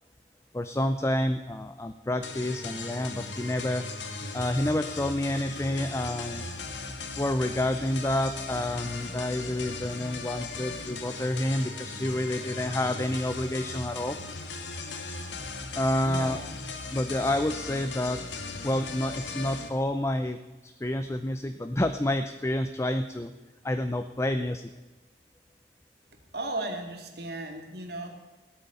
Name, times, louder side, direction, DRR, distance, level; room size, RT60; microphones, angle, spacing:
voice 1, 0.5-3.8 4.3-6.5 7.2-14.2 15.7-16.4 16.9-23.3 23.6-24.7, left 1 dB, 15° left, 8 dB, 0.6 m, -29 dB
sound 1, 2.2-19.7, left 3 dB, 75° left, 1.9 m, -38 dB
voice 2, 16.0-16.4 26.3-28.1, right 2 dB, 60° right, 3 dB, 2.6 m, -35 dB
17.0 x 9.0 x 9.2 m, 1.2 s
head